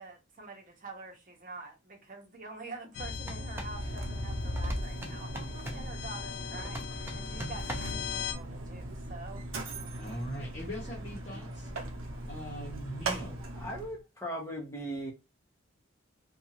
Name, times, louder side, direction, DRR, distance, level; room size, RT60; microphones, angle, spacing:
voice 1, 0.0-9.7, right 3 dB, 45° right, 0.9 m, -46 dB
sound 1, 2.9-8.3, left 3 dB, 85° left, 0.6 m, -38 dB
sound 2, 3.2-3.8 4.6-5.9 6.6-8.0, right 1 dB, 10° right, 0.4 m, -43 dB
Mechanisms, 3.2-14.0, right 2 dB, 85° right, 0.7 m, -40 dB
voice 2, 10.0-11.7 12.3-13.4, equal, 40° left, 1.0 m, -41 dB
voice 3, 13.6-15.1, right 1 dB, 15° left, 0.9 m, -38 dB
2.6 x 2.3 x 2.8 m
head